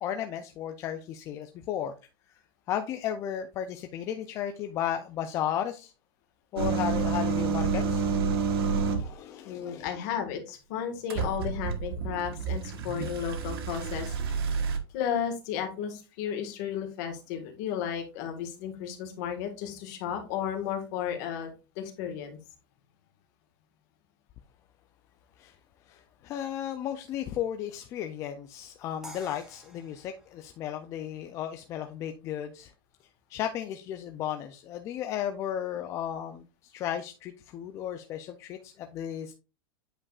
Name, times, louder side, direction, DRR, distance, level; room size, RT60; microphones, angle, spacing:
voice 1, 0.0-1.9 2.7-5.9 6.5-9.9 25.4-25.5 25.9-32.7 33.3-39.3, left 10 dB, 25° left, 0.4 m, -34 dB
sound 1, 6.6-9.1 11.1-14.8, right 5 dB, 80° right, 1.3 m, -29 dB
voice 2, 9.4-14.4 14.9-21.5 21.7-22.4, left 8 dB, 45° left, 1.7 m, -34 dB
sound 2, 29.0-32.1, right 1 dB, 5° right, 0.8 m, -51 dB
8.5 x 5.1 x 2.4 m
supercardioid pair, 170°, 12 cm